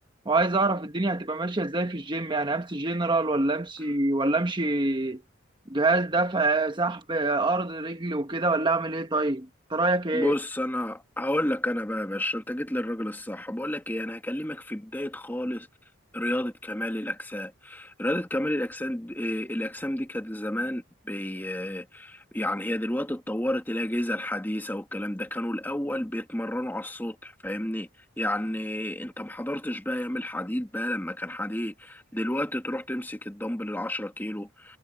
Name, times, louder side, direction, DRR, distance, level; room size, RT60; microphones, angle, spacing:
voice 1, 0.2-5.2 5.7-10.3, right 2 dB, 25° right, 1.2 m, -26 dB
voice 2, 10.1-15.7 16.1-27.9 28.2-34.8, left 1 dB, 10° left, 1.7 m, -31 dB
head